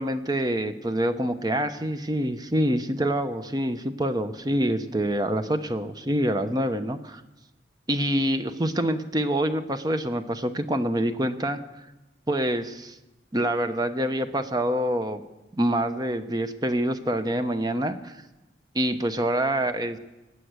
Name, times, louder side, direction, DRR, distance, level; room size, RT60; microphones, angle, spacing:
voice 1, 0.0-7.2 7.9-11.9 12.3-13.0 13.3-15.2 15.5-18.2 18.7-20.0, right 1 dB, 20° right, 8 dB, 0.8 m, -26 dB
19.0 x 9.1 x 8.1 m, 1.0 s
head